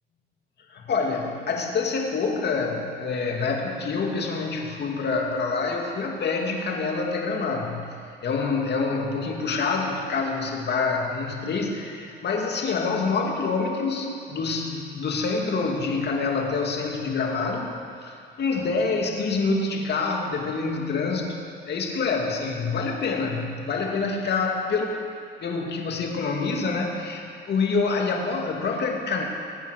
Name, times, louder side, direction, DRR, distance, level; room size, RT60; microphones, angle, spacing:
voice 1, 0.7-24.9 25.4-29.2, left 4 dB, 60° left, 1 dB, 2.5 m, -26 dB
20.0 x 9.3 x 6.6 m, 2.6 s
cardioid pair, 90°, 20 cm